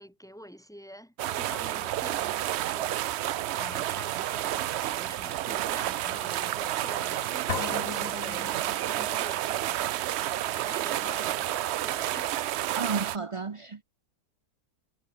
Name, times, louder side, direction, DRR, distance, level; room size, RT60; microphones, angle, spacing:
voice 1, 0.0-3.2 3.5-8.6 8.8-10.0 10.4-12.3, equal, ahead, 4.7 m, -46 dB
sound 1, 1.2-13.2, right 13 dB, 85° right, 0.6 m, -30 dB
sound 2, 7.5-9.3, left 7 dB, 60° left, 1.7 m, -37 dB
voice 2, 12.7-13.8, right 4 dB, 35° right, 0.5 m, -32 dB
omnidirectional pair, 1.7 m